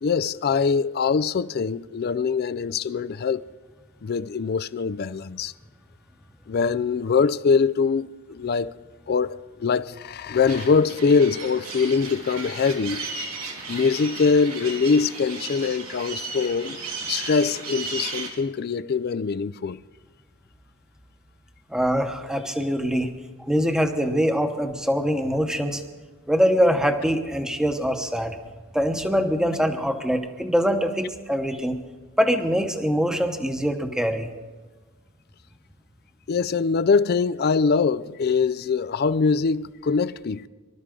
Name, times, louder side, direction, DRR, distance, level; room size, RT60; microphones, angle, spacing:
voice 1, 0.0-3.5 4.0-5.5 6.5-8.8 9.1-13.1 13.7-16.8 17.1-19.8 36.3-40.5, left 5 dB, 45° left, 0.4 m, -23 dB
sound 1, 10.5-18.3, right 3 dB, 90° right, 3.1 m, -35 dB
voice 2, 21.7-23.1 23.5-25.8 26.3-28.4 28.7-31.8 32.2-34.3, equal, 5° right, 0.9 m, -23 dB
25.0 x 12.5 x 3.8 m
head